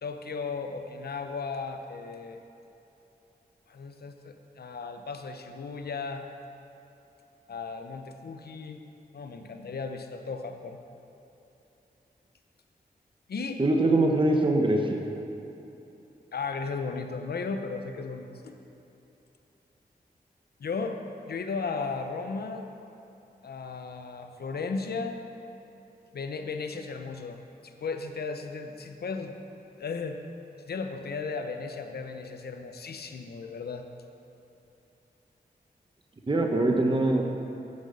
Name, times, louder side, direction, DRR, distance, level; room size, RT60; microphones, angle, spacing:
voice 1, 0.0-2.4 3.7-6.2 7.5-8.8 9.1-10.8 13.3-13.6 16.3-18.5 20.6-21.0 21.3-22.6 23.4-25.2 26.1-27.4 27.8-29.4 29.8-30.2 30.7-33.8, left 4 dB, 75° left, 6 dB, 0.8 m, -35 dB
voice 2, 13.6-15.1 36.3-37.2, right 2 dB, 30° right, 2 dB, 1.2 m, -23 dB
8.9 x 8.0 x 6.8 m, 3.0 s
cardioid pair, 60°, 16 cm